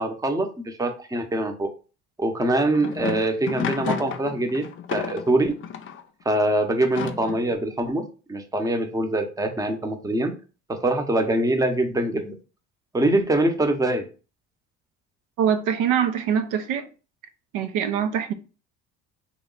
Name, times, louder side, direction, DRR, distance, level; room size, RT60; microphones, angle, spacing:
voice 1, 0.0-1.7 2.2-5.5 6.2-8.0 8.3-10.3 10.7-12.3 12.9-14.1, right 1 dB, 10° right, 0.7 m, -24 dB
sound 1, 2.5-6.0 6.8-7.6, left 8 dB, 40° left, 0.5 m, -32 dB
voice 2, 15.4-16.9 17.5-18.3, right 8 dB, 75° right, 0.6 m, -23 dB
3.2 x 3.0 x 3.8 m
cardioid pair, 100°, 31 cm